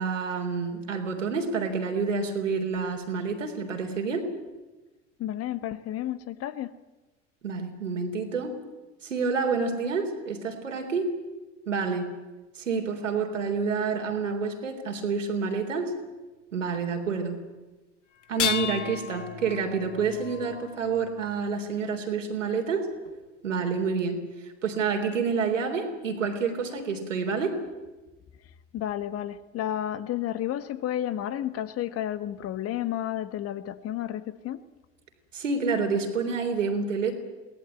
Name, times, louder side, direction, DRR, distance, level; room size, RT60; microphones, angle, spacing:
voice 1, 0.0-4.3 7.4-8.5 9.0-11.1 11.7-12.1 12.6-15.9 16.5-17.4 18.3-22.9 23.4-24.2 24.6-27.5 35.3-37.1, right 5 dB, 80° right, 4 dB, 3.6 m, -28 dB
voice 2, 5.2-6.7 28.7-34.6, left 11 dB, 40° left, 14 dB, 1.3 m, -31 dB
sound 1, 18.2-21.5 23.1-23.2 24.0-24.1, left 9 dB, 75° left, 1.3 m, -34 dB
22.5 x 18.0 x 9.1 m, 1.1 s
figure-of-eight pair, 75°, 37 cm